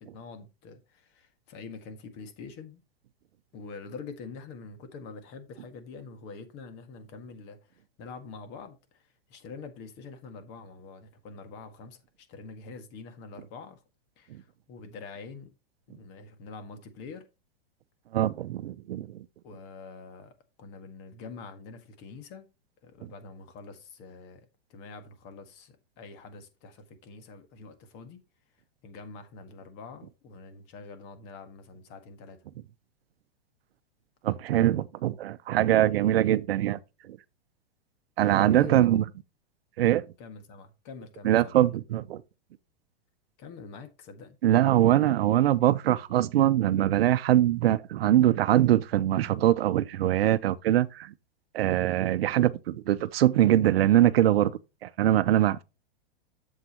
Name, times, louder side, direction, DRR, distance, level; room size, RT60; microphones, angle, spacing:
voice 1, 0.0-2.8 3.5-13.8 14.2-15.5 15.9-17.2 19.4-22.5 22.8-28.2 28.8-32.4 38.5-38.9 40.2-41.6 43.4-44.4, left 4 dB, 35° left, 1.7 m, -45 dB
voice 2, 18.1-19.2 34.2-36.8 37.1-37.2 38.2-39.0 39.8-40.0 41.2-42.2 44.4-51.1 51.5-54.5 54.8-55.6, right 13 dB, 75° right, 0.7 m, -23 dB
7.9 x 7.4 x 2.9 m
hypercardioid pair, 145°, 30 cm